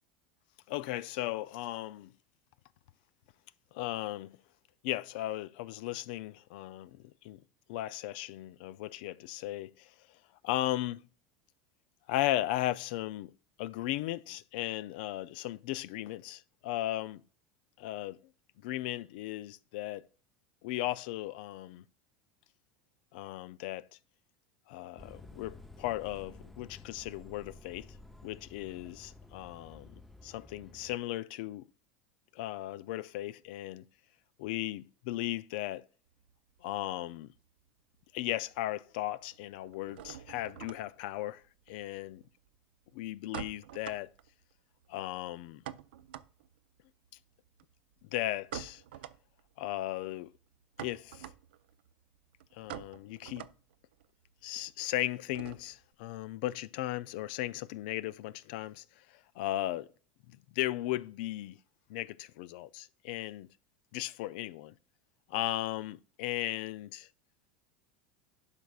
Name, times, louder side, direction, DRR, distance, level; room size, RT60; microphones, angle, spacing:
voice 1, 0.7-2.1 3.7-4.4 4.8-7.4 7.7-9.9 10.4-11.0 12.1-13.3 13.6-17.2 17.8-18.2 18.6-20.1 20.6-21.8 23.1-23.9 24.7-27.9 28.2-29.9 30.2-31.7 32.3-33.9 34.4-35.9 36.6-37.3 38.1-42.2 42.9-44.1 44.9-45.6 48.0-48.8 49.6-50.3 50.8-51.3 52.5-53.5 54.4-59.0 59.4-59.9 60.3-61.6 61.9-63.5 63.9-64.7 65.3-67.1, left 15 dB, 70° left, 0.4 m, -36 dB
sound 1, 25.0-31.0, left 2 dB, 5° left, 0.6 m, -52 dB
sound 2, 36.1-37.7 37.9-38.7 38.9-55.9, right 11 dB, 85° right, 0.4 m, -48 dB
11.5 x 5.1 x 2.3 m
supercardioid pair, 105°, 5 cm